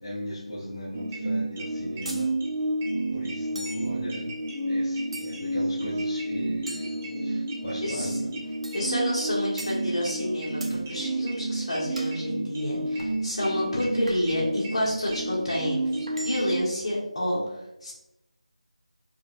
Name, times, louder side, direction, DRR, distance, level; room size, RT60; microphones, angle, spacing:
voice 1, 0.0-2.3 3.1-4.3 4.6-8.3, equal, 30° left, -8 dB, 0.7 m, -38 dB
sound 1, 0.9-16.6, right 1 dB, 10° right, 0.3 m, -30 dB
sound 2, 2.1-2.3 3.6-3.9 5.1-5.6 6.7-7.6 8.6-8.9 9.6-9.8 10.6-10.8 12.0-12.2 13.0-13.2 14.1-14.4 15.1-15.3 16.1-16.7, right 1 dB, 55° right, 0.6 m, -41 dB
voice 2, 7.8-8.3 8.7-17.9, left 1 dB, 45° left, -6 dB, 1.4 m, -29 dB
4.9 x 2.2 x 2.5 m, 0.91 s
figure-of-eight pair, 165°, 4 cm